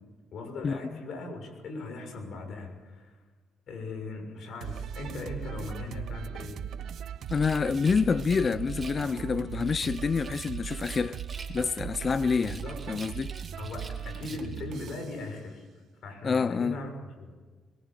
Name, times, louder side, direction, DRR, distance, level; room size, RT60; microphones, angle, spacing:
voice 1, 0.3-3.2 3.7-6.6 12.4-12.8 13.6-15.6 16.0-17.3, left 3 dB, 65° left, 6.5 m, -39 dB
sound 1, 4.6-15.2, right 9 dB, 70° right, 0.9 m, -38 dB
voice 2, 7.3-11.2 11.5-12.6 12.9-13.4 16.2-16.8, left 5 dB, 40° left, 0.6 m, -27 dB
Rattle, 7.3-9.2 9.6-11.9 12.2-14.7, right 4 dB, 30° right, 3.0 m, -48 dB
23.0 x 22.0 x 7.5 m
cardioid pair, 90°, 0 cm